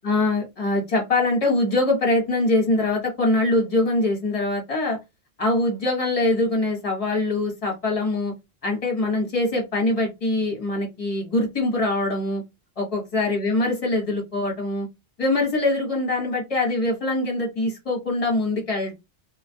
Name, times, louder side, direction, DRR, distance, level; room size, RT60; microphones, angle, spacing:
voice 1, 0.0-5.0 5.4-8.3 8.6-12.4 12.8-14.9 15.2-18.9, left 2 dB, 35° left, 1.0 m, -23 dB
2.3 x 2.1 x 2.6 m
omnidirectional pair, 1.1 m